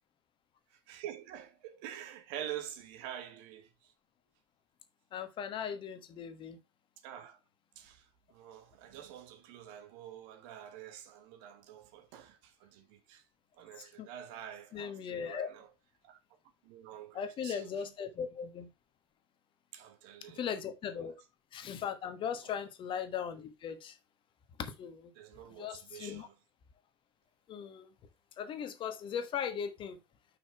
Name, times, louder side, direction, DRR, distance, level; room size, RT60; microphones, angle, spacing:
voice 1, 0.9-3.9 7.0-7.4 7.8-13.2 13.6-15.7 16.0-16.2 16.6-17.9 19.7-20.5 21.0-21.1 22.4-22.7 25.1-26.3, right 10 dB, 55° right, 1.2 m, -47 dB
voice 2, 5.1-6.6 14.0-14.1 14.7-15.5 17.1-18.7 20.4-21.1 21.5-23.9 24.6-25.1 25.6-26.3 27.5-27.9 28.4-30.0, left 7 dB, 40° left, 1.2 m, -38 dB
5.7 x 5.0 x 4.5 m
figure-of-eight pair, 70°, 14 cm